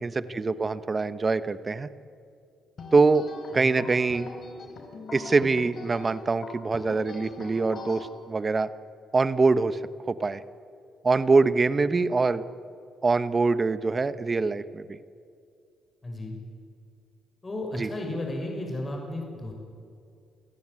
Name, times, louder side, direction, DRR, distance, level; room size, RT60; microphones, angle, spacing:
voice 1, 0.0-1.9 2.9-3.3 3.5-4.3 5.1-8.7 9.1-9.8 10.1-10.4 11.0-12.4 13.0-15.0 17.7-17.9, right 3 dB, 30° right, 14 dB, 1.0 m, -24 dB
sound 1, 2.8-8.1, left 3 dB, 55° left, 4.4 m, -42 dB
voice 2, 3.5-3.8 16.0-16.4 17.4-19.5, left 1 dB, 25° left, 1 dB, 6.1 m, -34 dB
27.5 x 15.5 x 9.7 m, 2.4 s
cardioid pair, 90°, 0 cm